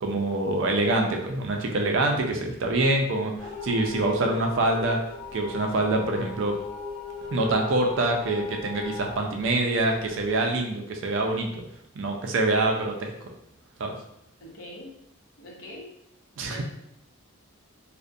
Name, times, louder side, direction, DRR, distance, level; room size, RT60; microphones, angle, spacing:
voice 1, 0.0-5.0 5.3-6.6 7.3-11.6 12.0-13.3 13.8-14.0 16.4-16.6, right 2 dB, 55° right, 2 dB, 0.3 m, -25 dB
sound 1, 3.4-10.3, left 4 dB, 25° left, 0.4 m, -38 dB
voice 2, 14.4-14.9 15.4-15.9 16.4-16.6, left 1 dB, 60° left, -4 dB, 0.8 m, -42 dB
2.3 x 2.1 x 2.6 m, 0.76 s
head